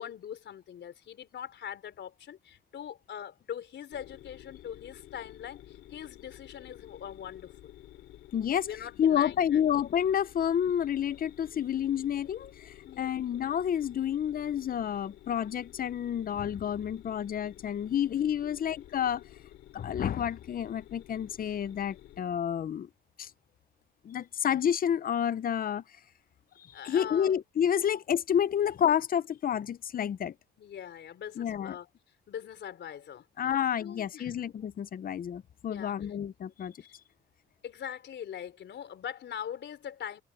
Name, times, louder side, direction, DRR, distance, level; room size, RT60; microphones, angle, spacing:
voice 1, 0.0-7.7 8.7-9.6 12.9-13.1 18.4-18.6 26.7-27.3 30.6-31.9 32.3-33.5 33.8-34.3 35.6-36.1 37.6-40.2, left 9 dB, 65° left, 4.1 m, -42 dB
sound 1, 3.9-22.2, left 13 dB, 85° left, 2.5 m, -52 dB
voice 2, 8.3-8.7 9.0-19.2 19.7-22.9 23.2-23.3 24.0-25.8 26.8-30.3 31.4-31.7 33.4-36.7, left 9 dB, 45° left, 0.7 m, -29 dB
cardioid pair, 90°, 20 cm